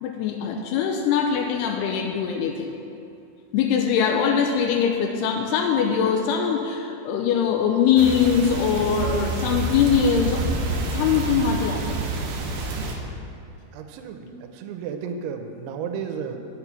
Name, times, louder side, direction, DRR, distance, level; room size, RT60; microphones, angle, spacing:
voice 1, 0.0-2.7 3.5-10.5 10.9-12.0, left 7 dB, 90° left, 2 dB, 2.6 m, -22 dB
sound 1, 8.0-13.0, right 3 dB, 70° right, 2.2 m, -28 dB
voice 2, 13.7-16.4, right 6 dB, 90° right, 6 dB, 2.7 m, -33 dB
9.0 x 6.7 x 5.9 m, 2.6 s
omnidirectional pair, 4.6 m